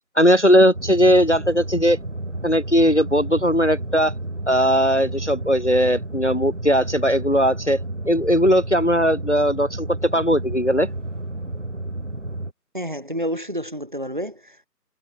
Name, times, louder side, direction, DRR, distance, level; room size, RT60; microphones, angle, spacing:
voice 1, 0.2-2.0 2.4-4.1 4.5-7.8 8.1-10.9, equal, 45° left, 0.9 m, -18 dB
sound 1, 0.7-12.5, right 1 dB, 45° right, 4.4 m, -31 dB
voice 2, 12.7-14.7, equal, 30° right, 2.7 m, -29 dB
figure-of-eight pair, 180°, 49 cm